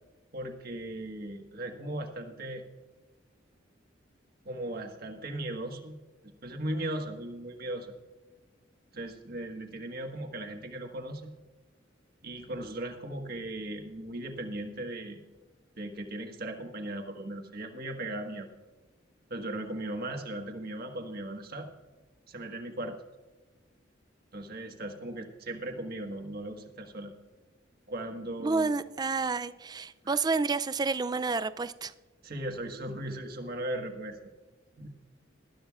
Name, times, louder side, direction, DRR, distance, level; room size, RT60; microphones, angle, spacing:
voice 1, 0.3-2.6 4.4-7.9 8.9-11.3 12.2-15.2 15.8-18.5 19.3-21.7 22.3-23.0 24.3-27.1 27.9-28.7 30.0-30.2 32.2-34.3 34.8-34.9, right 1 dB, 55° right, 1.5 m, -37 dB
voice 2, 28.4-31.9, right 4 dB, 20° right, 0.4 m, -29 dB
19.5 x 12.5 x 2.4 m
head